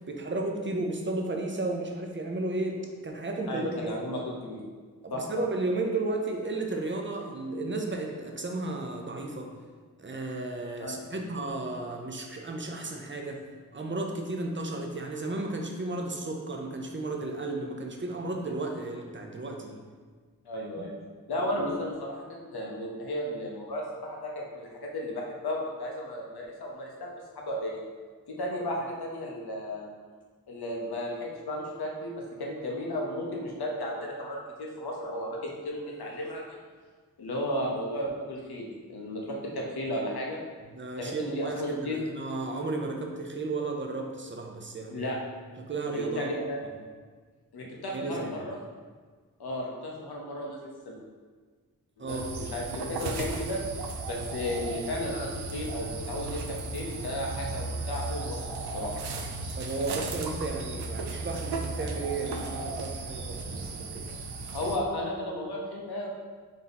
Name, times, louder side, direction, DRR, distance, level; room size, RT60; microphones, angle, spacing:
voice 1, 0.1-3.7 5.0-9.5 10.0-13.4 13.7-19.8 21.6-21.8 40.7-45.1 45.6-46.3 47.9-48.4 52.0-52.3 59.6-64.1, right 2 dB, 30° right, 2 dB, 0.6 m, -33 dB
voice 2, 3.5-4.6 5.1-5.2 10.8-11.0 20.4-20.9 21.3-27.8 28.3-29.9 30.5-36.6 37.2-40.4 41.0-42.0 44.9-45.2 45.9-46.6 47.5-48.6 49.4-51.0 52.0-53.6 54.0-58.9 64.5-66.1, left 1 dB, 75° left, -1 dB, 0.9 m, -34 dB
sound 1, 52.1-64.8, right 3 dB, 85° right, 0.5 m, -35 dB
3.7 x 2.8 x 3.9 m, 1.5 s
cardioid pair, 45°, 38 cm